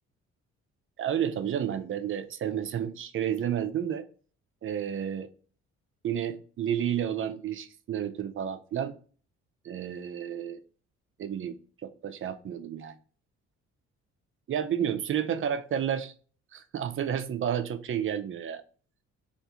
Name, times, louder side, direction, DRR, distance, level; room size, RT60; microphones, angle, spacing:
voice 1, 1.0-4.1 4.6-5.3 6.0-9.0 9.6-10.6 11.2-12.9 14.5-16.1 16.5-18.6, right 9 dB, 45° right, 0.4 m, -31 dB
3.4 x 2.5 x 2.8 m
cardioid pair, 90°, 30 cm